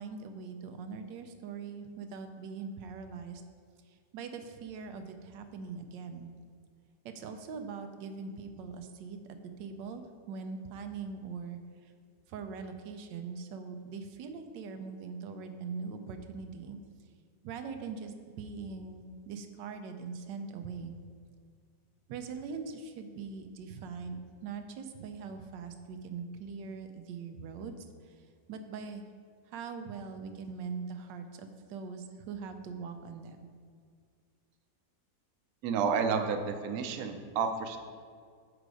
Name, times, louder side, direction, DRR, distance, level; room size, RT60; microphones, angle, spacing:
voice 1, 0.0-3.4 3.9-6.3 7.0-9.2 9.6-10.0 10.3-11.9 12.3-16.8 17.4-21.0 22.1-28.2 28.5-29.0 29.5-33.5, right 5 dB, 90° right, 6 dB, 1.3 m, -42 dB
voice 2, 35.6-37.8, right 6 dB, 65° right, 6 dB, 1.0 m, -30 dB
6.7 x 5.0 x 4.8 m, 2.1 s
omnidirectional pair, 1.9 m